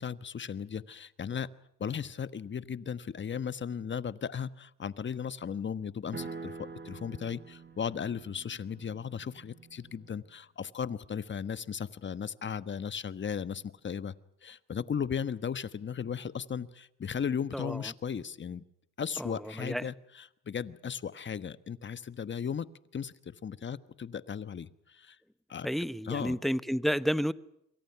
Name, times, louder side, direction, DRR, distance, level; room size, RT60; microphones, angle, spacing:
voice 1, 0.0-1.5 1.8-14.1 14.4-18.6 19.0-22.7 22.9-25.2 25.5-25.7 26.0-26.4, left 7 dB, 40° left, 1.3 m, -36 dB
sound 1, 6.1-10.2, right 4 dB, 35° right, 4.5 m, -46 dB
voice 2, 19.2-19.9 25.6-27.3, equal, ahead, 1.0 m, -31 dB
27.5 x 24.0 x 5.8 m
cardioid pair, 90°, 30 cm